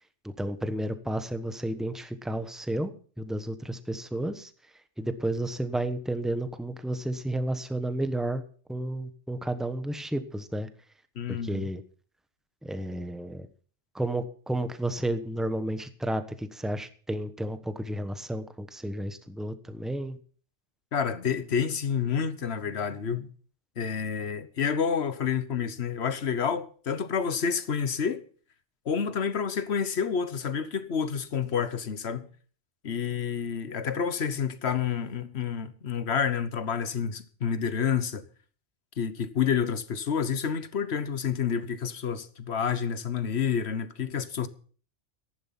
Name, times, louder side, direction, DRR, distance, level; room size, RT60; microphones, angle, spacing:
voice 1, 0.4-4.5 5.0-8.4 8.7-10.7 11.3-11.8 12.6-13.5 13.9-20.2, right 1 dB, ahead, 1.0 m, -32 dB
voice 2, 11.2-11.7 20.9-23.3 23.8-28.2 28.8-32.3 32.8-38.2 39.0-44.5, left 7 dB, 65° left, 1.3 m, -29 dB
14.5 x 11.0 x 5.9 m
omnidirectional pair, 1.2 m